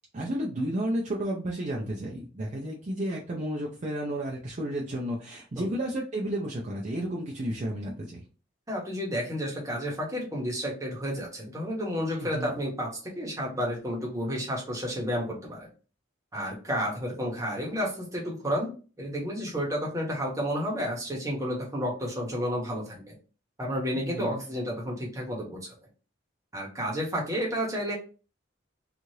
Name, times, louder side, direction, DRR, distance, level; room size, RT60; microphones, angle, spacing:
voice 1, 0.1-8.2 12.2-12.5 23.9-24.5, right 1 dB, 35° right, -2 dB, 0.5 m, -32 dB
voice 2, 8.7-15.7 16.3-23.1 23.6-25.7 26.5-27.9, equal, 15° right, -2 dB, 0.9 m, -31 dB
3.0 x 2.4 x 2.7 m, 0.35 s
head